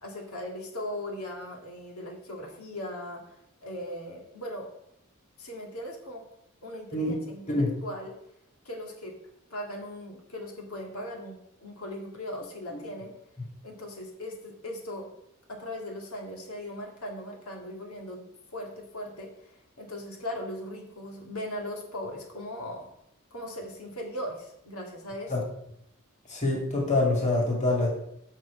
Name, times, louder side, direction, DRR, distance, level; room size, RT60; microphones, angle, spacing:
voice 1, 0.0-3.2 3.6-4.7 5.4-6.2 6.6-8.1 8.7-9.1 9.5-13.1 13.6-15.1 15.5-18.3 18.5-22.9 23.3-25.3, left 1 dB, 85° left, 1 dB, 2.1 m, -38 dB
voice 2, 26.3-27.9, left 2 dB, 35° left, -2 dB, 2.3 m, -25 dB
6.2 x 6.1 x 7.4 m, 0.75 s
head